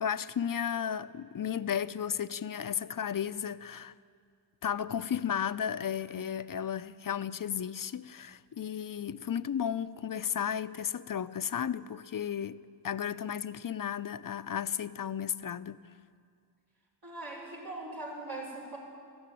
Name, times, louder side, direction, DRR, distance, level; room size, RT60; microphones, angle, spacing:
voice 1, 0.0-3.9 4.6-12.6 12.8-15.8, left 8 dB, 50° left, 0.6 m, -34 dB
voice 2, 17.0-18.8, right 2 dB, 60° right, 6.2 m, -40 dB
18.5 x 14.5 x 10.0 m
wide cardioid pair, 105°, 42 cm